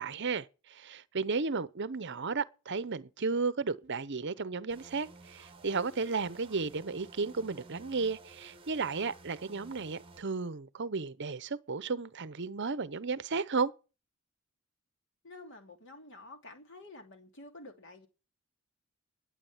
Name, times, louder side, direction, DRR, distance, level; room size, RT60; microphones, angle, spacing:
voice 1, 0.0-13.7, right 4 dB, 50° right, 0.8 m, -34 dB
sound 1, 4.7-10.2, right 3 dB, 25° right, 1.5 m, -54 dB
voice 2, 15.2-18.1, left 2 dB, 55° left, 2.7 m, -50 dB
12.0 x 8.6 x 7.3 m
head